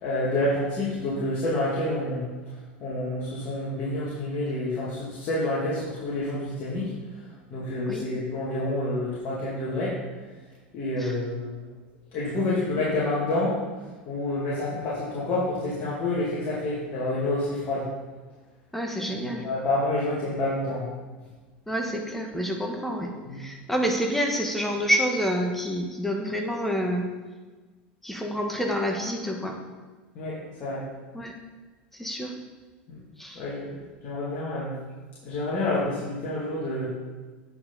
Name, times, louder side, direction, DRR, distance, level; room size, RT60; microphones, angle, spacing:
voice 1, 0.0-2.2 2.8-6.9 7.5-9.9 10.7-11.7 12.1-13.6 14.1-17.9 19.1-20.9 23.3-23.4 30.1-30.8 32.9-33.0 33.4-34.8 35.2-36.9, left 2 dB, 45° left, -8 dB, 2.5 m, -28 dB
voice 2, 18.7-19.5 21.7-27.1 28.0-29.6 31.1-31.3 31.9-32.3 33.2-33.4, equal, 5° left, 2 dB, 1.4 m, -28 dB
8.9 x 5.8 x 4.1 m, 1.3 s
hypercardioid pair, 85°, 6 cm